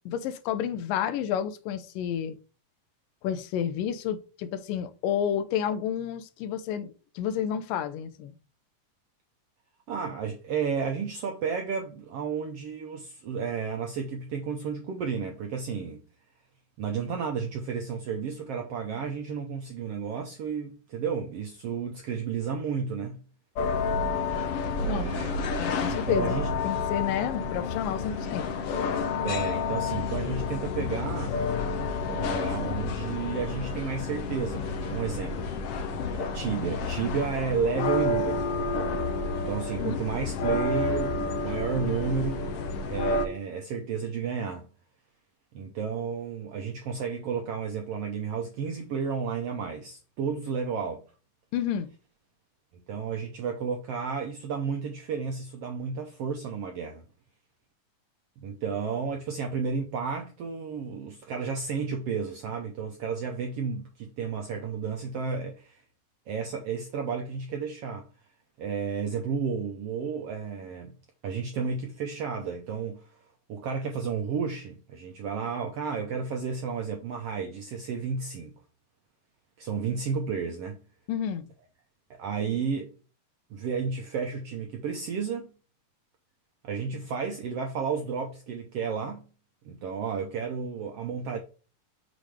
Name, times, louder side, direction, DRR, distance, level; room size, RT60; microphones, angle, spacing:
voice 1, 0.1-2.4 3.2-8.3 24.8-25.2 25.5-26.3 26.6-28.4 39.8-40.0 51.5-51.9 81.1-81.5, left 9 dB, 90° left, 2.4 m, -30 dB
voice 2, 9.9-16.0 16.8-23.2 24.7-25.4 25.9-26.7 29.2-31.4 32.0-35.5 36.1-38.5 39.5-42.5 42.9-44.7 45.5-51.0 52.7-57.0 58.4-65.8 66.3-68.1 68.6-70.9 71.2-73.0 73.5-78.5 79.6-80.8 82.2-82.9 83.5-85.5 86.6-89.2 89.6-91.4, right 6 dB, 75° right, 1.4 m, -32 dB
sound 1, 23.6-43.3, left 4 dB, 75° left, 1.4 m, -30 dB
7.0 x 3.9 x 4.8 m
omnidirectional pair, 3.8 m